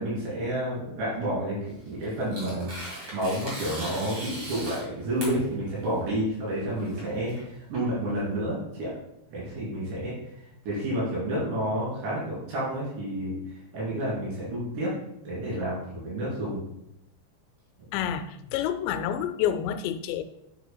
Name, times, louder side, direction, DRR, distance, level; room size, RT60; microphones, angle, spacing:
voice 1, 0.0-2.7 3.1-8.9 9.3-10.1 10.7-13.4 13.7-14.9 15.3-16.6, right 1 dB, 75° right, -8 dB, 5.5 m, -30 dB
Tearing, 1.7-8.4, equal, 35° right, 2.6 m, -39 dB
voice 2, 17.9-20.2, left 9 dB, 85° left, 10 dB, 2.7 m, -28 dB
9.0 x 8.3 x 2.3 m, 0.81 s
omnidirectional pair, 5.0 m